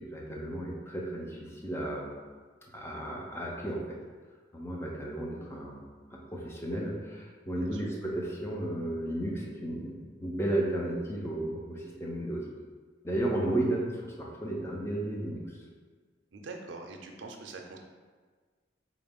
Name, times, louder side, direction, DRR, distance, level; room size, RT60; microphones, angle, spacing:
voice 1, 0.0-2.1 2.7-4.0 4.5-5.8 6.1-12.4 13.0-15.4, right 1 dB, 15° left, -2 dB, 0.5 m, -33 dB
voice 2, 7.5-7.8 16.3-17.8, right 3 dB, 75° right, 3 dB, 0.5 m, -44 dB
4.1 x 2.4 x 3.5 m, 1.5 s
head